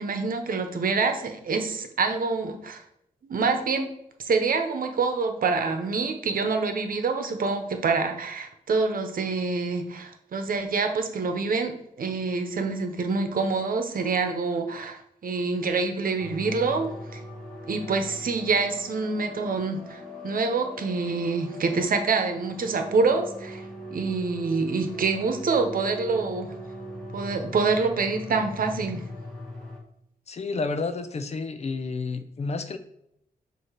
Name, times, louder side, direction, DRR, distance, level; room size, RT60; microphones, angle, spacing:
voice 1, 0.0-2.8 3.3-3.9 4.2-17.2 17.7-23.6 23.9-26.5 27.1-29.0, right 4 dB, 65° right, 6 dB, 0.9 m, -26 dB
sound 1, 16.2-29.8, equal, 5° left, 1.6 m, -40 dB
voice 2, 30.3-32.8, left 4 dB, 45° left, 10 dB, 0.6 m, -30 dB
7.9 x 2.8 x 5.7 m, 0.76 s
wide cardioid pair, 165°, 16 cm